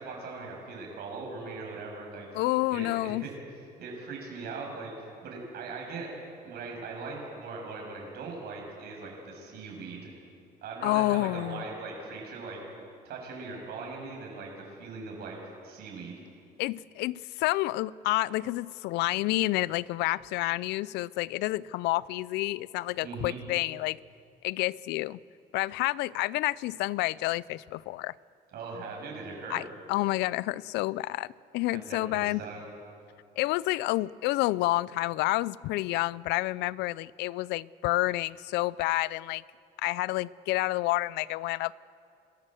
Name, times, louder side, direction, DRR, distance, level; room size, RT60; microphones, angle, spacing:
voice 1, 0.0-2.4 2.7-3.3 3.8-4.9 5.2-6.1 6.4-10.1 10.6-12.6 13.0-14.5 14.8-16.1 23.0-23.4 28.5-29.6 31.7-32.6, right 4 dB, 70° right, 7.2 m, -40 dB
voice 2, 2.3-3.3 10.8-11.6 16.6-24.0 24.4-25.2 25.5-28.1 29.5-31.3 31.5-32.4 33.4-39.4 39.8-41.7, left 18 dB, 90° left, 0.4 m, -29 dB
26.5 x 14.5 x 7.7 m
cardioid pair, 110°, 17 cm